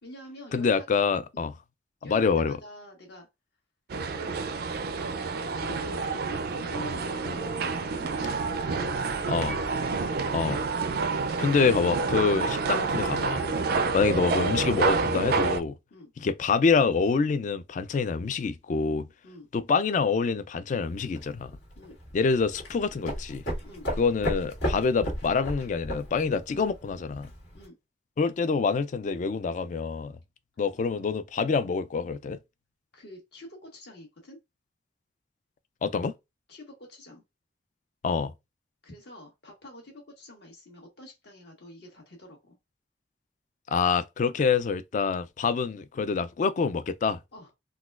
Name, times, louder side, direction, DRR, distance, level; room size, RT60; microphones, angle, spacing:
voice 1, 0.0-0.9 1.3-1.5 2.0-3.3 3.9-4.4 5.5-9.5 11.1-11.6 15.9-16.1 19.2-19.5 21.7-22.0 23.6-23.9 27.5-27.8 32.9-34.4 36.5-37.2 38.8-42.6 47.3-47.6, left 1 dB, 65° left, 1.5 m, -47 dB
voice 2, 0.5-1.5 2.0-2.6 9.3-9.6 10.3-10.6 11.4-13.5 13.9-15.7 16.2-19.1 19.5-21.5 22.1-23.4 24.0-27.3 28.2-30.1 30.6-32.4 35.8-36.1 38.0-38.3 43.7-47.2, left 5 dB, 45° left, 0.3 m, -26 dB
sound 1, 3.9-15.6, right 4 dB, 55° right, 0.4 m, -28 dB
sound 2, 20.8-27.6, equal, 80° left, 1.7 m, -35 dB
4.0 x 2.2 x 2.4 m
head